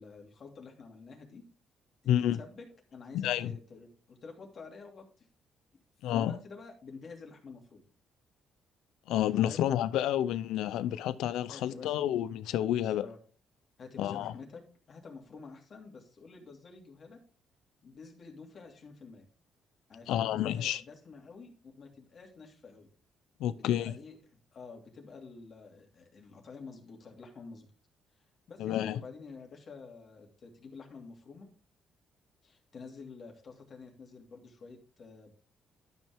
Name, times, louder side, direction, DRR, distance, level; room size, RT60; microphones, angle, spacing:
voice 1, 0.0-1.4 2.0-5.3 6.1-7.8 9.5-9.7 11.5-11.9 12.7-13.2 13.8-14.6 14.9-17.2 17.8-19.2 19.9-22.9 23.6-24.2 24.5-27.7 28.5-31.5 32.4-35.3, left 4 dB, 50° left, 2.7 m, -49 dB
voice 2, 2.1-2.4 3.1-3.5 6.0-6.3 9.1-13.1 14.0-14.3 20.1-20.8 23.4-23.9 28.6-29.0, left 11 dB, 90° left, 0.5 m, -29 dB
12.0 x 5.6 x 3.5 m
cardioid pair, 90°, 0 cm